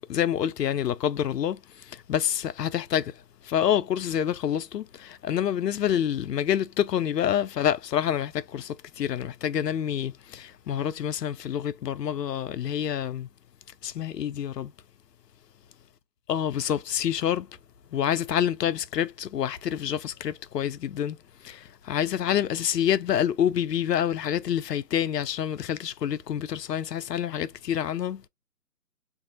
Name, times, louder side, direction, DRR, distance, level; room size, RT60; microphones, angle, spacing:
voice 1, 0.1-1.6 1.9-3.1 3.4-13.3 13.8-14.7 16.3-17.5 17.9-21.2 21.4-28.2, left 9 dB, 80° left, 0.5 m, -27 dB
2.6 x 2.0 x 2.5 m
hypercardioid pair, 180°, 48 cm